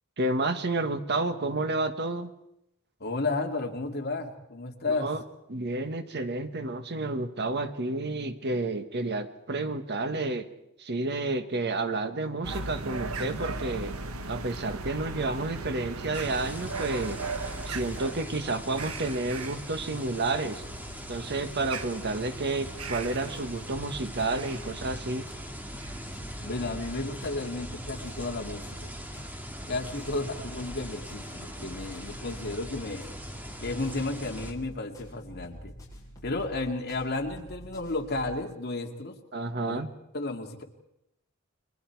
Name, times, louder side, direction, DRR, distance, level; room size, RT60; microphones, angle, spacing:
voice 1, 0.2-2.3 4.9-5.2 5.5-10.5 10.8-13.9 14.2-17.2 17.6-20.6 21.1-25.3 39.3-39.9, right 2 dB, 50° right, 9 dB, 1.4 m, -30 dB
voice 2, 3.0-5.1 26.4-28.9 29.7-33.1 33.6-35.7 36.2-39.1 39.6-39.8 40.1-40.6, left 2 dB, 50° left, 3 dB, 2.5 m, -33 dB
sound 1, 12.4-26.2, right 3 dB, 85° right, 1.3 m, -39 dB
sound 2, 16.1-34.5, equal, 10° right, 2.3 m, -41 dB
sound 3, 22.9-38.3, equal, 15° left, 7.8 m, -47 dB
29.5 x 23.0 x 4.7 m, 0.82 s
head